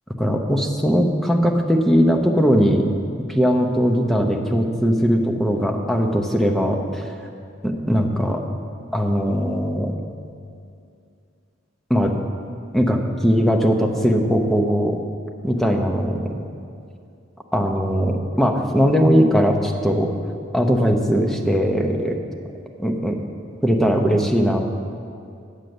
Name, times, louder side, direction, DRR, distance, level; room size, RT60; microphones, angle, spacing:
voice 1, 0.2-2.9 3.3-7.1 7.6-8.4 8.9-9.9 11.9-12.1 12.7-15.0 15.4-16.3 17.5-20.1 20.5-22.2 22.8-23.2 23.6-24.6, equal, ahead, 2 dB, 0.7 m, -19 dB
8.2 x 6.6 x 7.7 m, 2.4 s
head